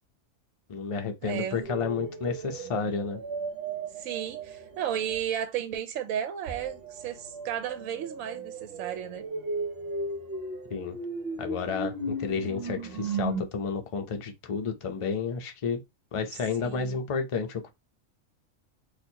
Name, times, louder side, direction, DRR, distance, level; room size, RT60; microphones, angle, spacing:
voice 1, 0.7-3.2 10.7-11.0 11.4-15.8 16.1-17.7, left 5 dB, 40° left, 0.4 m, -31 dB
voice 2, 1.2-1.7 4.0-9.3 16.6-17.0, right 10 dB, 75° right, 1.0 m, -33 dB
sound 1, 1.6-5.3 6.5-13.4, right 3 dB, 50° right, 1.0 m, -36 dB
4.3 x 2.5 x 2.8 m
omnidirectional pair, 1.4 m